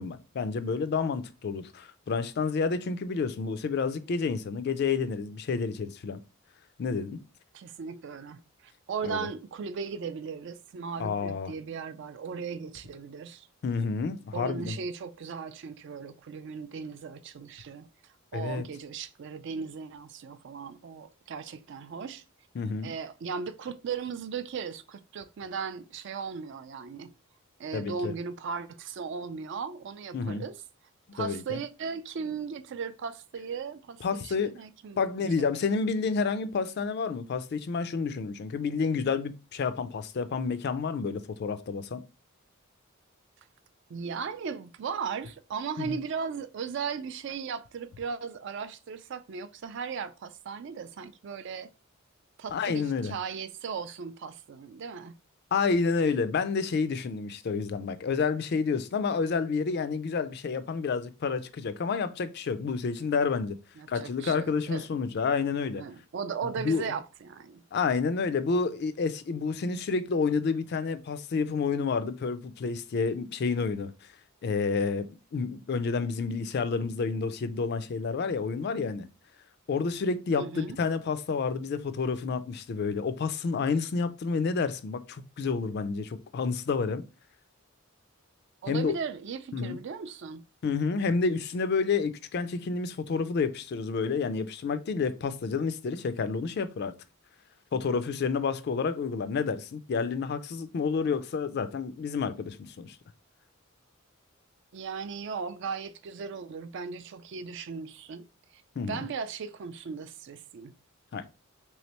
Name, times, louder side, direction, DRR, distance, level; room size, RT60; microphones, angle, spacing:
voice 1, 0.0-6.2 6.8-7.2 9.0-9.3 11.0-11.5 13.6-14.7 18.3-18.6 22.6-22.9 27.7-28.1 30.1-30.4 31.2-31.6 34.0-34.5 35.0-42.0 45.8-46.0 52.5-53.1 55.5-63.6 63.9-65.8 66.6-66.8 67.7-73.9 74.4-75.1 75.3-79.1 79.7-87.0 88.7-89.0 89.5-89.8 90.6-96.9 97.7-103.0 108.8-109.1 111.1-111.2, left 5 dB, 50° left, 0.3 m, -29 dB
voice 2, 7.5-13.5 14.3-17.9 18.3-22.2 22.8-27.1 27.6-30.6 31.1-35.5 43.9-51.7 52.4-55.1 63.8-64.9 65.7-67.6 80.4-80.8 88.6-90.4 104.7-108.3 108.5-108.6 108.9-110.7, right 6 dB, 55° right, 0.4 m, -37 dB
3.4 x 3.1 x 2.9 m
head